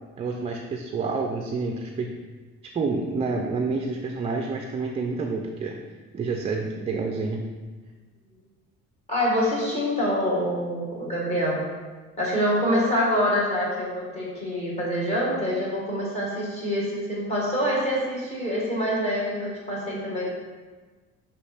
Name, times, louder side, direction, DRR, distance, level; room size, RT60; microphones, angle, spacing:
voice 1, 0.2-2.1 2.7-5.7 6.1-7.4, right 4 dB, 20° right, 2 dB, 0.4 m, -28 dB
voice 2, 9.1-11.6 12.2-20.3, equal, 20° left, -5 dB, 1.9 m, -25 dB
5.4 x 5.0 x 4.3 m, 1.4 s
cardioid pair, 155°, 29 cm